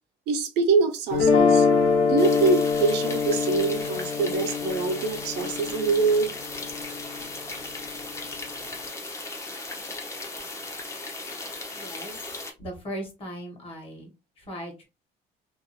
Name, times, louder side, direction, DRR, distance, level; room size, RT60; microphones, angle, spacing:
voice 1, 0.3-1.7 2.0-6.3, right 4 dB, 80° right, 5 dB, 0.7 m, -24 dB
sound 1, 1.1-7.2, left 5 dB, 60° left, 1.0 m, -24 dB
sound 2, 2.2-12.5, left 2 dB, 15° left, 0.6 m, -37 dB
voice 2, 11.7-12.1 12.6-14.1 14.4-14.9, equal, 35° left, 2 dB, 1.1 m, -38 dB
2.6 x 2.3 x 2.7 m, 0.26 s
cardioid pair, 145°, 17 cm